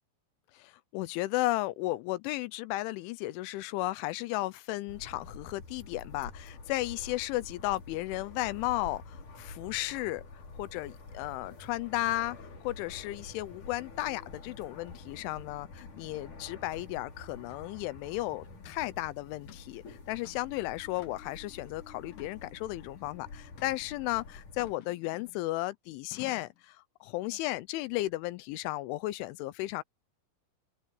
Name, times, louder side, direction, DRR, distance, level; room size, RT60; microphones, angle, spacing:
voice 1, 0.5-10.2 10.6-29.8, left 18 dB, 85° left, 3.2 m, -34 dB
sound 1, 4.9-24.7, left 3 dB, 40° left, 5.8 m, -48 dB
sound 2, 18.9-19.0 19.5-19.7 20.1-20.5 21.0-21.4 22.1-22.8 23.6-23.9 24.6-25.5 26.1-26.6, left 12 dB, 65° left, 2.3 m, -52 dB
open air
omnidirectional pair, 5.5 m